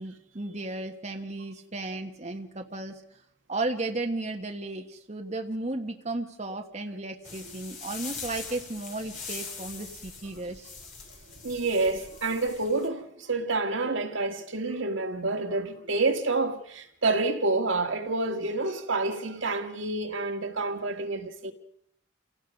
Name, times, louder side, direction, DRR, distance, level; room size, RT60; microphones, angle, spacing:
voice 1, 0.0-3.0 3.5-10.7, right 2 dB, 35° right, 1.4 m, -34 dB
sound 1, 7.2-12.9, left 5 dB, 40° left, 3.3 m, -42 dB
voice 2, 11.4-21.5, right 3 dB, 75° right, 1.8 m, -28 dB
28.5 x 17.5 x 5.3 m
head